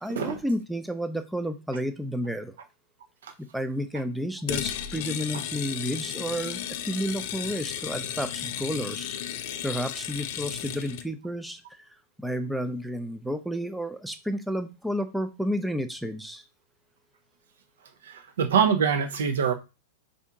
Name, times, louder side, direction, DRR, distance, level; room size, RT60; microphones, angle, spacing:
voice 1, 0.0-2.5 3.5-9.2 9.6-11.9 12.2-16.4, equal, ahead, 0.5 m, -31 dB
sound 1, 4.5-11.1, left 10 dB, 50° left, 0.4 m, -34 dB
voice 2, 18.0-19.5, right 7 dB, 65° right, 0.7 m, -24 dB
4.4 x 2.6 x 3.5 m
figure-of-eight pair, 95°, 0 cm